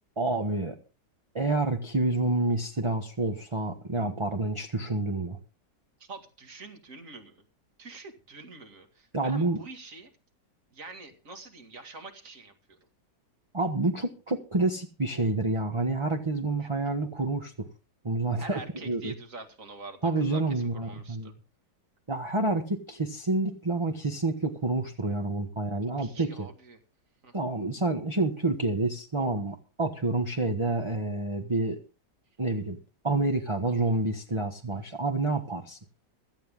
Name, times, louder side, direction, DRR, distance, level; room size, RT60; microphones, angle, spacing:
voice 1, 0.2-0.8 1.3-5.4 9.1-9.6 13.5-17.7 18.0-19.1 20.0-21.3 22.1-26.5 27.3-31.8 32.4-32.8 33.0-35.8, right 2 dB, 20° right, 3 dB, 1.0 m, -28 dB
voice 2, 6.0-7.4 7.8-10.1 10.7-12.8 16.6-16.7 18.4-21.3 26.0-26.8 27.2-27.3, right 3 dB, 45° right, 5 dB, 2.5 m, -45 dB
16.5 x 13.0 x 3.7 m, 0.33 s
omnidirectional pair, 1.9 m